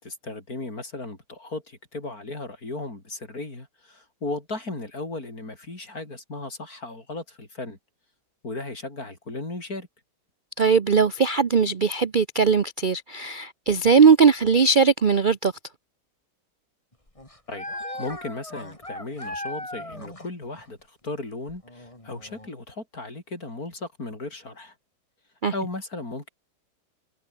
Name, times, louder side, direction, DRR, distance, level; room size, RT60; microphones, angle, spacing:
voice 1, 0.0-7.8 8.4-9.9 17.5-17.7 17.9-24.7 25.5-26.3, left 2 dB, 55° left, 6.0 m, -36 dB
voice 2, 10.6-15.5 25.4-25.5, right 5 dB, 45° right, 0.7 m, -19 dB
sound 1, 16.9-20.3 20.6-20.7 21.5-22.5, left 1 dB, 20° left, 4.5 m, -37 dB
omnidirectional pair, 1.8 m